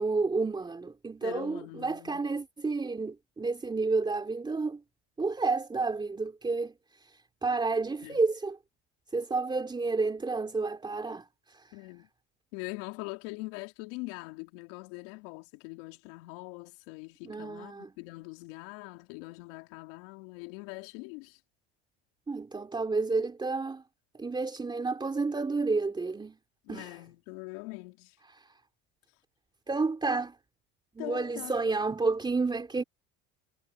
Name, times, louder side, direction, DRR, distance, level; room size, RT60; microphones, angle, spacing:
voice 1, 0.0-4.8 5.2-6.7 7.0-7.1 7.4-8.6 9.1-11.7 17.2-17.9 22.3-23.8 24.1-26.4 26.7-26.9 28.3-28.4 29.7-30.4 30.9-32.8, right 3 dB, 15° right, 3.1 m, -30 dB
voice 2, 1.2-2.2 8.0-8.2 11.7-12.1 12.5-21.4 26.6-28.2 31.0-31.5, left 25 dB, 75° left, 3.7 m, -42 dB
supercardioid pair, 105°, 29 cm